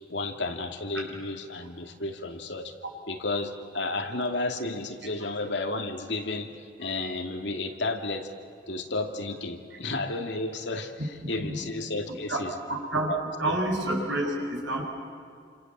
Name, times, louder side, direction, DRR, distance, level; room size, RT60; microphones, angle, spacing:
voice 1, 0.1-2.7 3.1-8.3 8.7-12.5 13.1-13.2 13.4-13.5, left 2 dB, 75° left, 5 dB, 2.5 m, -32 dB
voice 2, 12.7-13.1 13.4-14.8, right 1 dB, 75° right, 0 dB, 6.8 m, -28 dB
29.5 x 26.5 x 7.5 m, 2.4 s
head